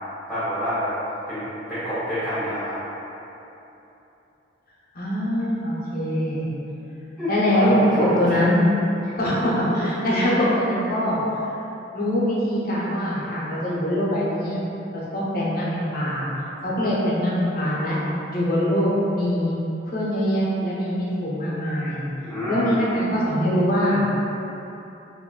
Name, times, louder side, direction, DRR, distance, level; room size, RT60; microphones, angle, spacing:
voice 1, 0.3-1.0 1.3-1.4 1.7-2.7 7.2-8.1 22.3-22.9, equal, ahead, -16 dB, 0.6 m, -27 dB
voice 2, 4.9-6.5 7.3-8.6 9.2-11.2 11.9-14.6 15.1-16.3 16.6-18.0 18.3-19.5 19.9-22.0 22.5-24.0, equal, 50° left, -7 dB, 0.6 m, -23 dB
3.7 x 2.5 x 2.2 m, 3.0 s
head